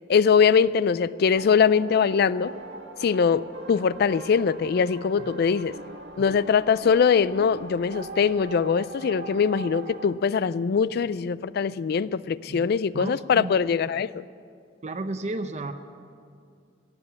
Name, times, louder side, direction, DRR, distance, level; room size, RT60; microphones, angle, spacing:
voice 1, 0.1-2.5 3.0-5.8 6.2-14.2, left 6 dB, 55° left, 18 dB, 0.3 m, -22 dB
sound 1, 1.4-10.1, right 2 dB, 75° right, 1.8 m, -41 dB
voice 2, 12.9-13.5 14.8-15.7, right 2 dB, 35° right, 8 dB, 0.6 m, -33 dB
17.0 x 7.6 x 9.6 m, 2.3 s
head